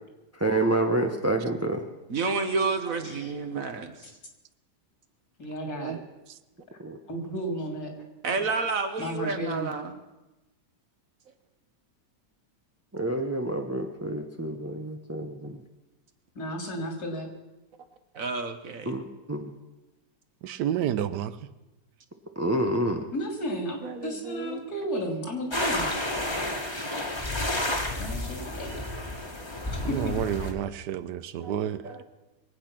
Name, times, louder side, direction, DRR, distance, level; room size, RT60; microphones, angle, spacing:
voice 1, 0.3-1.8 6.8-7.0 12.9-15.6 18.9-19.5 22.4-23.0, right 1 dB, 20° right, 4 dB, 0.4 m, -28 dB
voice 2, 2.1-3.9 8.2-10.0 18.1-19.0 23.8-24.7 31.4-31.5 31.8-32.0, right 4 dB, 55° right, 7 dB, 1.5 m, -30 dB
voice 3, 5.4-6.0 7.1-7.9 9.0-9.7 16.3-17.3 23.1-25.9 28.0-28.7 29.9-30.1, equal, 65° left, 2 dB, 3.2 m, -33 dB
voice 4, 20.4-21.4 29.8-31.9, right 10 dB, 80° right, 13 dB, 1.3 m, -30 dB
sound 1, 25.5-30.5, left 1 dB, 15° left, 1.6 m, -31 dB
22.5 x 8.5 x 6.0 m, 1.0 s
omnidirectional pair, 1.8 m